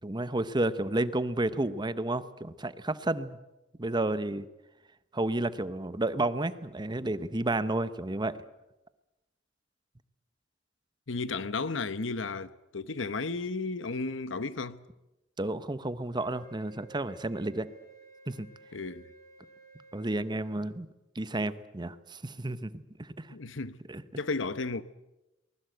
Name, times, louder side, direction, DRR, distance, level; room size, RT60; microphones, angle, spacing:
voice 1, 0.0-3.4 3.8-4.5 5.1-8.4 15.4-17.7 18.3-18.5 19.9-20.9 21.1-23.3 23.9-24.0, right 2 dB, 25° right, 0.9 m, -31 dB
voice 2, 11.1-14.8 18.7-19.1 23.3-23.8 24.2-24.8, left 3 dB, 75° left, 1.0 m, -33 dB
Wind instrument woodwind instrument, 16.1-20.6, right 4 dB, 20° left, 6.9 m, -54 dB
23.5 x 20.5 x 8.0 m
head